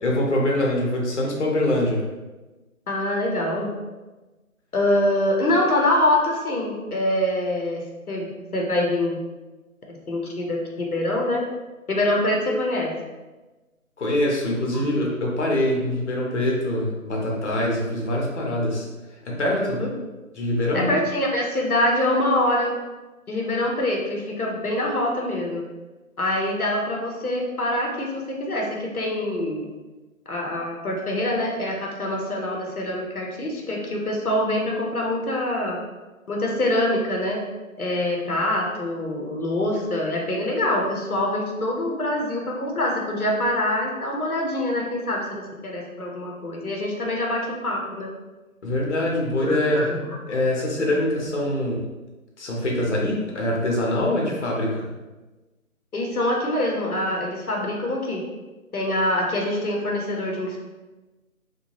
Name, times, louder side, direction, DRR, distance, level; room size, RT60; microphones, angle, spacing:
voice 1, 0.0-2.0 14.0-18.9 19.2-19.8 20.3-20.9 48.6-49.9 50.3-51.8 52.4-54.8, left 1 dB, 55° left, -2 dB, 0.7 m, -24 dB
voice 2, 2.9-3.7 4.7-9.2 9.9-11.4 11.9-12.9 14.7-14.8 19.6-19.9 20.7-22.8 23.3-25.6 26.2-29.7 30.3-35.8 36.3-37.4 37.8-45.3 45.6-48.1 49.4-50.0 55.9-58.2 58.7-60.6, left 1 dB, 90° left, 0 dB, 0.8 m, -25 dB
2.8 x 2.2 x 3.0 m, 1.2 s
figure-of-eight pair, 150°, 43 cm